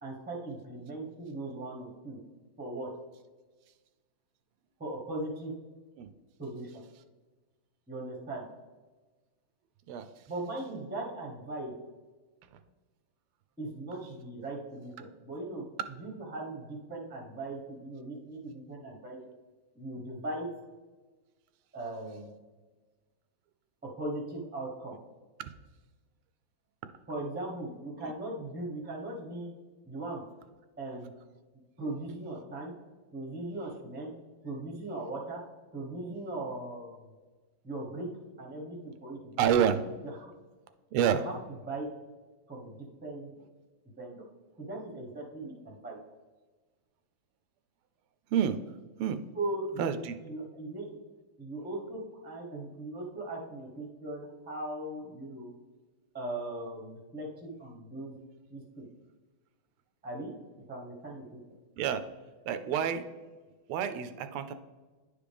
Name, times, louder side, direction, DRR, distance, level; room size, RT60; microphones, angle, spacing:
voice 1, 0.0-2.2 2.6-2.9 4.8-5.5 6.4-6.8 7.9-8.4 10.3-11.7 13.6-15.6 16.0-19.2 19.7-20.5 21.7-22.3 24.0-25.0 27.1-29.5 29.8-30.2 30.8-31.1 31.8-32.7 33.1-34.1 34.4-35.4 35.7-37.1 37.6-38.1 38.4-39.4 40.2-40.3 41.1-41.4 41.7-41.9 42.5-43.3 44.0-44.2 44.6-46.0 49.3-50.0 50.2-51.0 51.4-55.5 56.1-58.2 58.5-58.8 60.0-60.3 60.7-61.4, right 2 dB, 10° right, 0 dB, 0.6 m, -39 dB
voice 2, 39.4-39.8 40.9-41.2 48.3-48.6 49.0-49.2 49.8-50.1 61.8-62.0 62.5-63.1 63.7-64.5, right 8 dB, 85° right, 10 dB, 1.5 m, -28 dB
10.0 x 5.0 x 3.4 m, 1.3 s
omnidirectional pair, 2.4 m